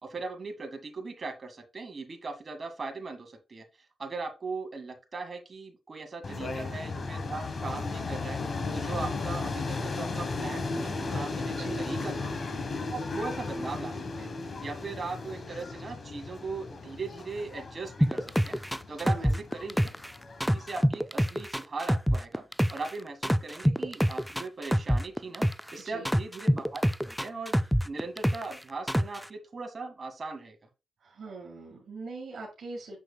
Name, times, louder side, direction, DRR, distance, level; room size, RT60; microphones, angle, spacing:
voice 1, 0.0-3.7 4.0-8.4 8.7-12.3 12.9-14.3 14.6-18.6 18.9-19.9 20.5-22.4 22.7-25.5 25.7-27.5 27.8-30.6, right 3 dB, 45° right, 4 dB, 1.8 m, -39 dB
sound 1, 6.2-20.9, left 3 dB, 50° left, 1.3 m, -35 dB
voice 2, 6.3-6.8 11.5-12.0 19.0-19.4 25.8-26.1 31.0-33.0, right 3 dB, 70° right, 0 dB, 1.8 m, -42 dB
sound 2, 18.0-20.1 20.4-22.9 23.2-25.7 26.0-28.6 28.9-29.2, equal, ahead, 0.3 m, -25 dB
6.6 x 6.2 x 2.3 m, 0.29 s
cardioid pair, 65°, 0 cm